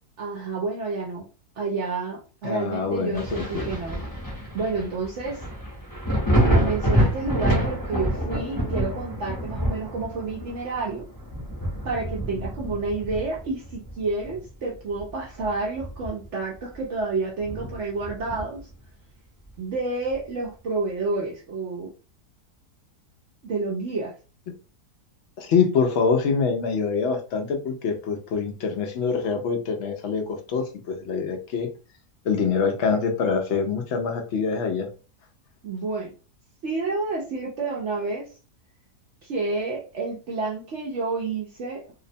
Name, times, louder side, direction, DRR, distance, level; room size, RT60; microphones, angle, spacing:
voice 1, 0.2-1.2 1.6-4.0 4.5-5.4 6.4-11.1 11.8-18.6 19.6-21.9 23.4-24.1 35.6-36.1 36.6-38.3 39.2-41.8, right 3 dB, 65° right, -3 dB, 0.7 m, -29 dB
voice 2, 2.4-3.7 25.4-31.7 32.3-34.9, left 5 dB, 80° left, 4 dB, 0.6 m, -25 dB
Thunder, 3.1-14.5 14.9-16.4 16.7-16.8 17.4-18.7 20.1-20.2, equal, 20° left, 0.7 m, -27 dB
2.7 x 2.0 x 2.6 m, 0.34 s
omnidirectional pair, 1.7 m